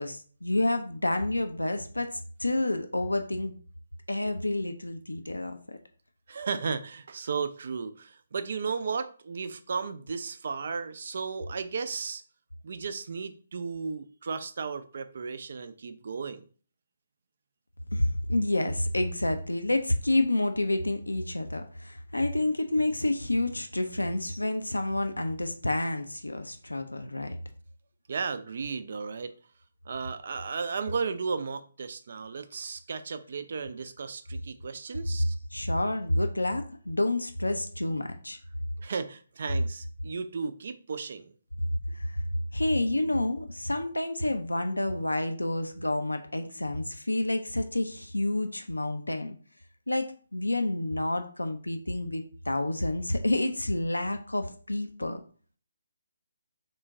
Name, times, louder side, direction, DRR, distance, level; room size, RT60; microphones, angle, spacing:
voice 1, 0.0-3.6 4.1-5.8 17.9-27.4 35.5-38.4 41.9-42.2 42.5-49.4 49.9-55.2, left 1 dB, 85° left, 0.4 m, -29 dB
voice 2, 6.3-12.2 12.6-16.4 28.1-29.3 29.9-35.3 38.8-41.3, right 5 dB, 50° right, 0.3 m, -34 dB
3.7 x 2.1 x 3.6 m
figure-of-eight pair, 145°, 0 cm